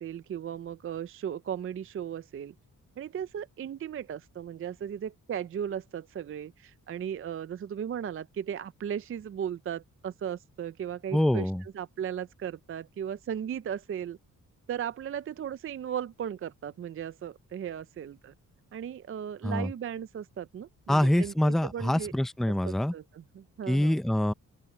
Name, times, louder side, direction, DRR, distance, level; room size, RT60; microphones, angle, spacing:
voice 1, 0.0-2.5 3.0-14.2 14.7-18.3 18.7-22.1 22.6-24.0, right 9 dB, 40° right, 0.4 m, -36 dB
voice 2, 11.1-11.6 19.4-19.7 20.9-22.9 23.7-24.3, left 1 dB, ahead, 0.6 m, -25 dB
open air
wide cardioid pair, 150°, 33 cm